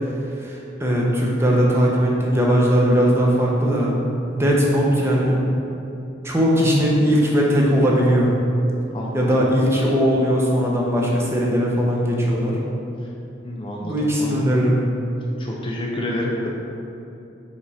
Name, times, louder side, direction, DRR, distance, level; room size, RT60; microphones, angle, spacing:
voice 1, 0.4-3.9 4.3-5.4 6.2-8.3 9.1-12.6 13.8-14.8, equal, 15° right, -3 dB, 0.9 m, -19 dB
voice 2, 8.9-9.3 13.4-14.4 15.4-16.5, left 1 dB, 30° left, -2 dB, 0.6 m, -29 dB
5.4 x 5.1 x 4.2 m, 2.8 s
head